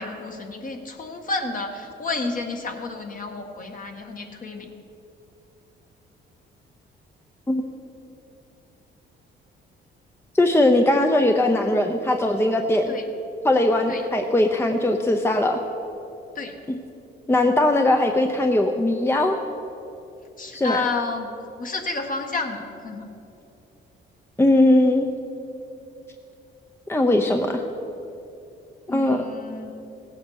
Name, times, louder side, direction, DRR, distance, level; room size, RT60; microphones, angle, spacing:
voice 1, 0.0-4.7 12.9-13.1 13.9-14.1 16.3-16.6 20.4-21.3 21.6-23.1 28.9-29.7, left 3 dB, 45° left, 3 dB, 1.7 m, -30 dB
voice 2, 10.3-12.9 13.4-15.6 17.3-19.4 20.5-20.8 24.4-25.1 26.9-27.6 28.9-29.2, left 1 dB, 10° left, 4 dB, 0.8 m, -20 dB
17.0 x 8.6 x 6.5 m, 2.9 s
cardioid pair, 90°, 20 cm